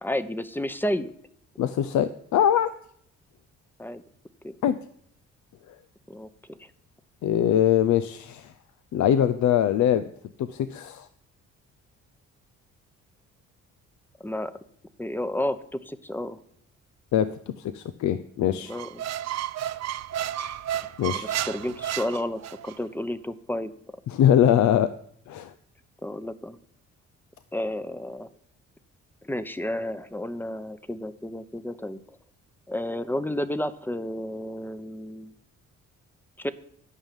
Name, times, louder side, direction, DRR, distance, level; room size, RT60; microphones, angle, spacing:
voice 1, 0.0-1.1 3.8-4.0 4.4-4.6 6.1-6.7 14.2-14.5 15.0-16.4 18.7-19.0 21.1-23.7 26.0-26.6 27.5-28.3 29.2-32.2 32.7-35.4 36.4-36.5, left 1 dB, 5° left, 13 dB, 0.8 m, -31 dB
voice 2, 1.6-2.7 4.6-4.8 7.2-8.5 8.9-10.0 10.4-11.1 17.1-17.3 17.6-18.7 21.0-21.3 24.1-24.9 25.3-25.5, left 10 dB, 70° left, 12 dB, 0.7 m, -22 dB
Squeak, 18.7-22.8, right 11 dB, 60° right, 0.6 m, -32 dB
12.5 x 5.6 x 9.1 m, 0.67 s
cardioid pair, 90°, 30 cm